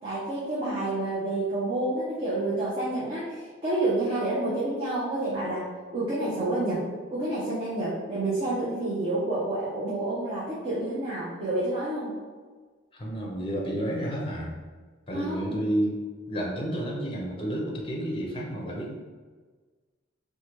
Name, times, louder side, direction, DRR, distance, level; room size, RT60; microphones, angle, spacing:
voice 1, 0.0-6.8 7.1-12.1 15.1-15.6, right 2 dB, 30° right, -9 dB, 0.7 m, -29 dB
voice 2, 12.9-14.6 15.1-16.0 16.3-18.9, right 1 dB, 25° left, -2 dB, 0.5 m, -30 dB
3.1 x 2.2 x 2.9 m, 1.4 s
head